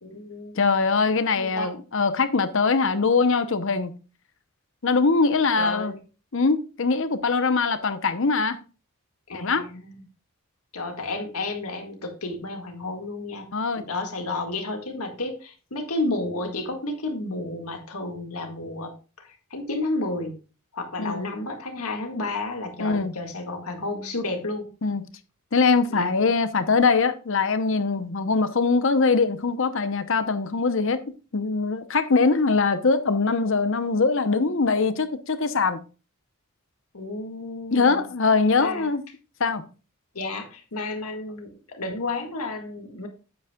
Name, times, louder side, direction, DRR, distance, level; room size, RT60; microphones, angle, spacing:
voice 1, 0.0-0.6 1.3-1.7 5.6-6.0 9.3-10.0 10.7-20.3 20.7-24.7 25.9-26.1 36.9-38.1 38.6-38.9 40.1-43.1, left 2 dB, 85° left, 1.9 m, -32 dB
voice 2, 0.6-3.9 4.8-5.9 6.3-8.6 9.3-9.7 13.5-13.8 21.0-21.3 22.8-23.2 24.8-25.0 25.5-31.0 31.3-35.8 37.7-39.0 39.4-39.6, left 4 dB, 60° left, 0.8 m, -22 dB
8.7 x 8.2 x 2.3 m
head